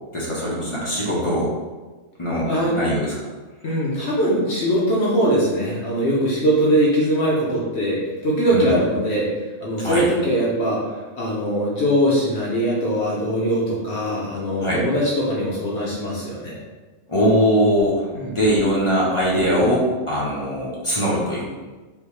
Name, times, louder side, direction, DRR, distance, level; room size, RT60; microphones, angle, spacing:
voice 1, 0.1-1.5 2.2-3.1 8.5-8.7 9.8-10.0 14.6-14.8 17.1-21.4, equal, 35° left, -6 dB, 0.6 m, -21 dB
voice 2, 3.6-9.3 9.6-10.8 11.2-16.6 18.1-18.3, equal, 60° left, -5 dB, 0.9 m, -21 dB
3.5 x 2.6 x 3.0 m, 1.3 s
omnidirectional pair, 1.3 m